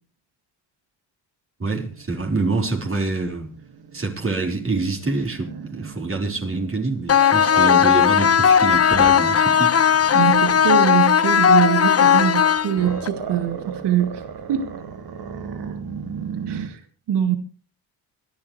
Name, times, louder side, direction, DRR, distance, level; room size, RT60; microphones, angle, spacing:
voice 1, 1.6-3.5 3.9-9.7 10.0-10.2, right 3 dB, 30° right, 4.7 m, -26 dB
Growling, 1.9-8.1 8.5-10.8 12.3-16.7, right 6 dB, 65° right, 2.5 m, -36 dB
sound 1, 7.1-13.1, left 8 dB, 35° left, 0.9 m, -16 dB
voice 2, 10.1-14.2 14.5-14.7 16.5-16.8 17.1-17.4, right 10 dB, 80° right, 2.2 m, -23 dB
25.5 x 11.5 x 3.3 m
cardioid pair, 90°, 41 cm